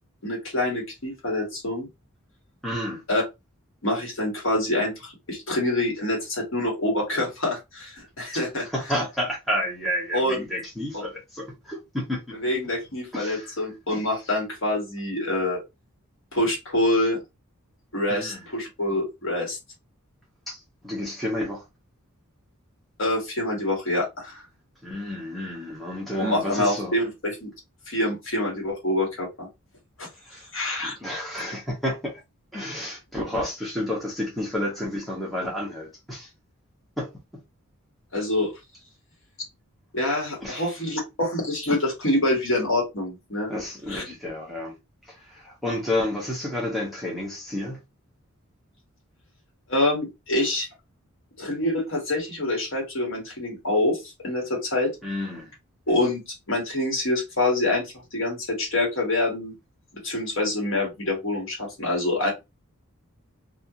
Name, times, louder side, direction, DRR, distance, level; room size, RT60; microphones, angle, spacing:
voice 1, 0.2-1.9 3.1-3.2 3.8-8.6 10.1-10.4 10.9-11.1 12.4-15.6 16.3-17.2 17.9-19.6 23.0-24.4 26.2-27.5 27.9-29.5 30.0-30.1 30.5-30.9 38.1-38.5 39.9-43.5 43.9-44.0 49.7-50.7 51.4-54.9 55.9-56.2 56.5-59.5 60.0-62.3, left 1 dB, 65° left, 1.3 m, -26 dB
voice 2, 2.6-3.0 8.3-12.4 13.1-13.5 18.1-18.4 20.5-21.6 24.8-26.9 30.2-30.5 30.8-32.2 32.5-36.3 37.0-37.1 40.4-40.7 43.5-44.7 45.1-47.8 55.0-55.5, left 1 dB, ahead, 0.7 m, -30 dB
2.4 x 2.4 x 2.7 m
head